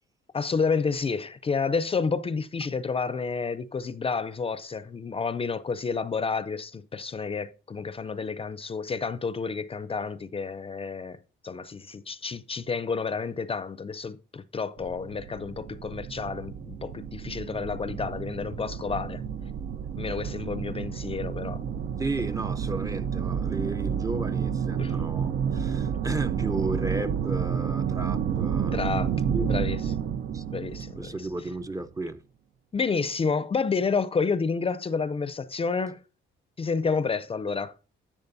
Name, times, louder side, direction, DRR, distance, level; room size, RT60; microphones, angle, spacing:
voice 1, 0.3-11.2 11.4-19.2 20.0-21.6 24.8-25.0 28.7-29.1 29.4-29.8 30.5-31.2 32.7-36.0 36.6-37.7, left 5 dB, 30° left, 0.5 m, -30 dB
sound 1, 14.8-31.8, right 8 dB, 65° right, 0.7 m, -30 dB
voice 2, 22.0-28.8 29.3-29.5 30.3-30.4 31.0-32.2, right 2 dB, 15° right, 0.6 m, -34 dB
10.5 x 7.5 x 2.7 m
cardioid pair, 90°, 20 cm